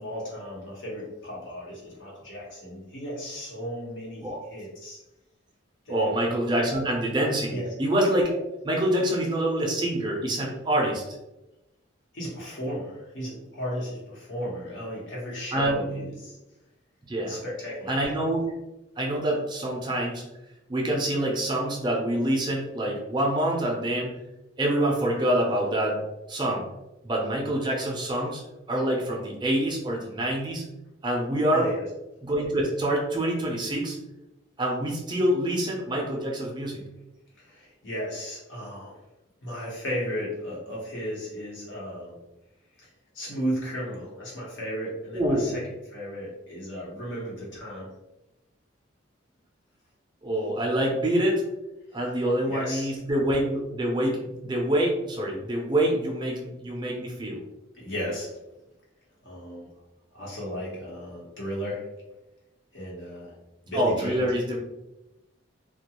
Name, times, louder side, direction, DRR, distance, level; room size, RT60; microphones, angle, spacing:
voice 1, 0.0-5.0 5.8-6.1 7.5-7.7 12.1-16.4 17.2-17.9 31.5-31.8 37.4-39.0 39.4-42.2 42.8-42.9 43.1-47.9 52.5-52.9 57.7-58.4 59.2-59.7 60.1-61.8 62.7-63.3 63.6-64.3, equal, 75° left, -5 dB, 1.0 m, -34 dB
voice 2, 5.9-8.4 8.6-11.1 15.5-15.9 17.1-17.4 17.9-18.5 19.0-20.2 20.7-24.2 24.6-26.0 26.3-26.7 27.0-28.4 28.7-30.6 31.0-31.6 32.2-34.0 34.6-36.8 45.1-45.5 50.2-51.4 51.9-57.4 63.7-64.6, right 1 dB, 25° right, -1 dB, 0.4 m, -26 dB
2.3 x 2.2 x 2.9 m, 0.95 s
head